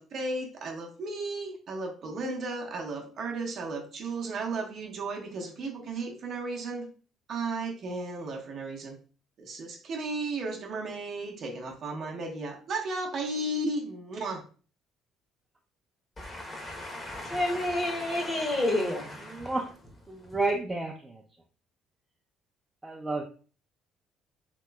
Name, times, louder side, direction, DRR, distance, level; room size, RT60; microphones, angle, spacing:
voice 1, 0.0-6.9 7.3-9.0 9.4-14.4, right 2 dB, 55° right, 1 dB, 0.7 m, -34 dB
voice 2, 16.2-19.5, left 1 dB, 25° left, 2 dB, 0.9 m, -30 dB
voice 3, 19.2-19.7 20.1-21.2 22.8-23.2, right 2 dB, 15° right, 0 dB, 0.4 m, -31 dB
3.0 x 2.9 x 2.2 m, 0.39 s
cardioid pair, 90°, 0 cm